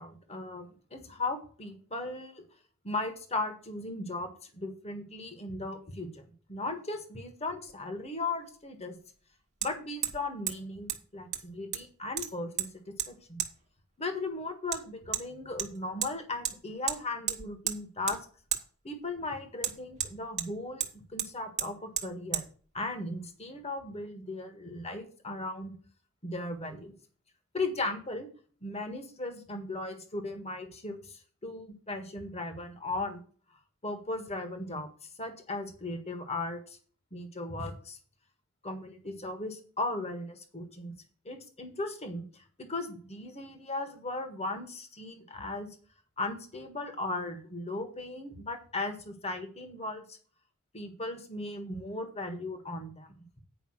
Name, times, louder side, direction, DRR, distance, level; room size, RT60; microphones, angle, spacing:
voice 1, 0.0-2.4 2.8-9.0 9.6-12.7 13.1-13.4 14.0-18.2 18.8-22.4 22.7-25.7 26.2-26.9 27.5-28.3 28.6-33.2 33.8-36.8 37.1-38.0 38.6-40.9 41.2-45.7 46.2-50.2 50.7-53.1, left 2 dB, 30° left, 6 dB, 1.6 m, -37 dB
Hammer, 7.7-7.8 9.6-9.7 10.0-10.2 10.5-10.6 10.9-11.0 11.3-11.9 12.2-12.7 13.0-13.1 13.4-13.5 14.7-14.8 15.1-15.2 15.6-16.1 16.4-16.6 16.9-17.0 17.3-17.8 18.1-18.2 18.5-18.6 19.6-20.5 20.8-20.9 21.2-21.3 21.6-21.7 22.0-22.1 22.3-22.5, right 9 dB, 35° right, 1.3 m, -32 dB
9.3 x 5.2 x 6.4 m, 0.43 s
head